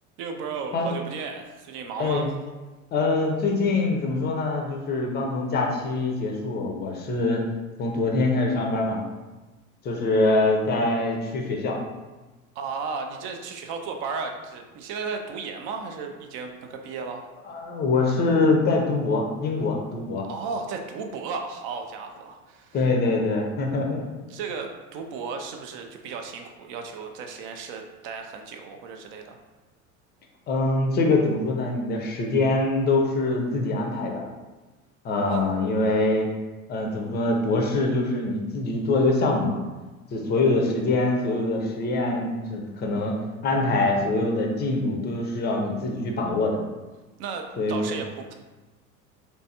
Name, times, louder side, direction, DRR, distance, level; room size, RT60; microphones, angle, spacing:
voice 1, 0.2-2.4 12.6-17.3 20.3-22.8 24.3-29.4 35.3-35.6 47.2-48.3, right 5 dB, 30° right, 4 dB, 0.4 m, -34 dB
voice 2, 2.9-7.4 7.8-9.0 9.8-11.8 17.5-20.3 22.7-24.0 30.5-34.3 35.0-36.3 36.7-39.6 40.1-43.2 43.4-46.6 47.6-48.0, left 2 dB, 25° left, 1 dB, 0.5 m, -24 dB
3.3 x 3.0 x 2.7 m, 1.2 s
figure-of-eight pair, 75°, 43 cm